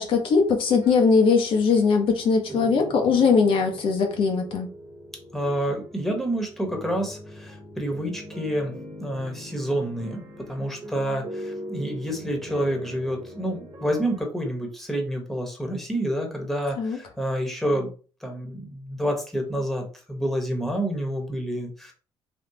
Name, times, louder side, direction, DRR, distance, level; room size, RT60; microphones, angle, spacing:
voice 1, 0.0-4.7 16.8-17.0, left 5 dB, 65° left, 0.7 m, -20 dB
sound 1, 0.7-14.2, equal, 45° right, 1.1 m, -41 dB
voice 2, 5.3-8.7 9.0-17.9 18.2-21.9, right 1 dB, ahead, 1.2 m, -28 dB
3.5 x 2.4 x 2.8 m
supercardioid pair, 80°, 10 cm